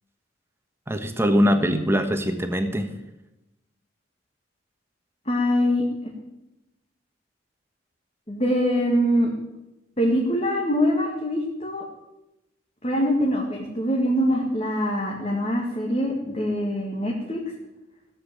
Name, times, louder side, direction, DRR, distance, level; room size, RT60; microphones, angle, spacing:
voice 1, 0.9-2.9, equal, 10° right, 7 dB, 1.3 m, -22 dB
voice 2, 5.3-5.8 8.3-9.3 10.0-11.8 12.8-17.4, equal, 35° left, -1 dB, 2.0 m, -23 dB
15.5 x 7.7 x 8.5 m, 0.95 s
head